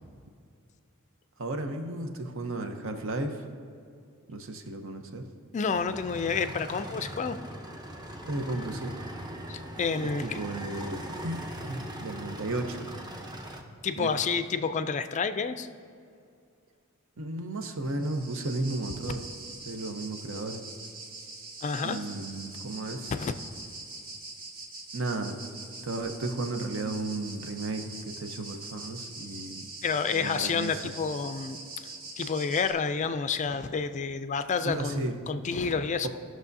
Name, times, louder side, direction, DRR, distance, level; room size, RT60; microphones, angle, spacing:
voice 1, 1.4-3.4 4.3-5.2 8.3-8.9 10.2-11.0 11.2-12.9 13.9-14.1 17.2-19.2 19.6-20.6 21.8-23.1 24.9-25.4 25.8-29.7 30.1-30.8 34.6-35.2 36.0-36.1, right 2 dB, 65° right, 5 dB, 0.8 m, -34 dB
voice 2, 5.5-7.4 9.5-10.4 13.8-15.7 21.6-22.0 23.1-23.3 29.8-31.6 32.2-36.1, left 5 dB, 35° left, 11 dB, 0.3 m, -29 dB
sound 1, 5.7-13.6, equal, 20° right, 0.7 m, -40 dB
sound 2, 17.8-32.7, right 2 dB, 45° right, 1.1 m, -43 dB
16.5 x 6.2 x 2.7 m, 2.3 s
head